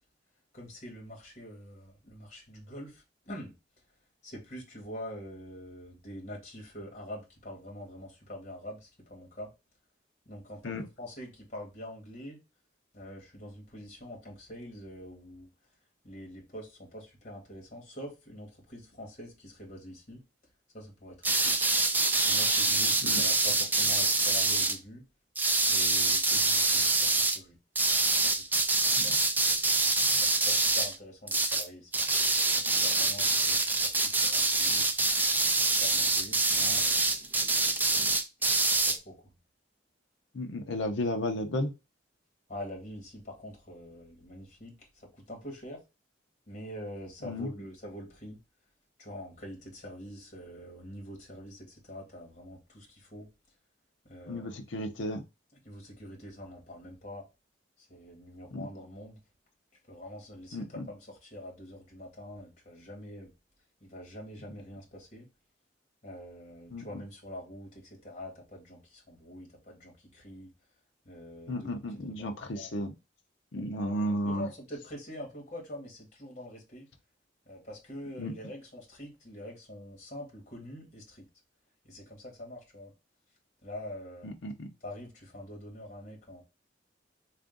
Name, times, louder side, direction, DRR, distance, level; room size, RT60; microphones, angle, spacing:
voice 1, 0.5-3.5 4.2-9.5 10.2-10.7 11.0-12.4 12.9-15.5 16.0-20.2 20.7-21.6 22.2-25.0 25.7-27.6 28.2-29.6 30.2-32.1 32.4-34.9 35.5-37.1 38.8-39.3 42.5-45.8 46.5-48.4 49.0-53.3 54.1-54.5 55.6-57.2 57.9-59.2 59.9-63.3 63.8-65.3 66.0-70.5 71.0-72.7 73.8-76.9 77.5-81.3 81.9-82.9 83.6-84.3 84.8-86.4, equal, 40° left, 1.5 m, -45 dB
sound 1, 21.2-24.8 25.4-27.4 27.8-31.0 31.3-31.7 31.9-39.0, right 3 dB, 10° right, 0.4 m, -26 dB
voice 2, 40.3-41.7 47.2-47.5 54.3-55.2 58.5-58.7 60.5-60.9 66.7-66.8 71.5-72.9 73.5-74.5 78.2-78.3 84.2-84.7, left 1 dB, 80° left, 0.7 m, -33 dB
3.5 x 2.5 x 3.7 m
head